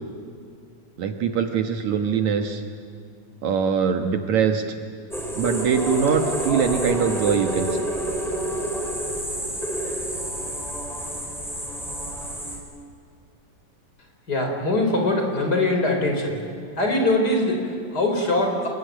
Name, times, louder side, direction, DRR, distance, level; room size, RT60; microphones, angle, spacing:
voice 1, 1.0-2.6 3.4-4.6 5.4-7.8, right 7 dB, 65° right, 5 dB, 2.5 m, -22 dB
sound 1, 5.1-12.6, right 1 dB, ahead, 4.0 m, -28 dB
voice 2, 14.3-16.4 16.8-18.7, left 2 dB, 30° left, 3 dB, 4.6 m, -22 dB
26.5 x 22.0 x 9.3 m, 2.4 s
omnidirectional pair, 3.7 m